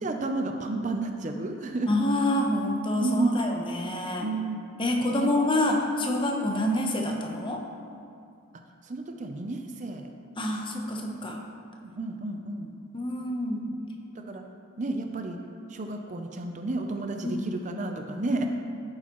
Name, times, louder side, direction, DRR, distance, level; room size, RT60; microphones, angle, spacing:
voice 1, 0.0-1.9 3.0-3.4 4.2-4.6 5.1-5.3 8.8-10.1 11.8-12.7 14.3-14.4 14.8-15.4 15.7-18.5, right 2 dB, 35° right, 4 dB, 0.5 m, -31 dB
voice 2, 1.8-4.3 4.8-7.6 10.4-11.5 12.9-13.6 17.2-17.4, left 1 dB, 25° left, 1 dB, 0.8 m, -27 dB
11.0 x 8.7 x 3.0 m, 2.4 s
head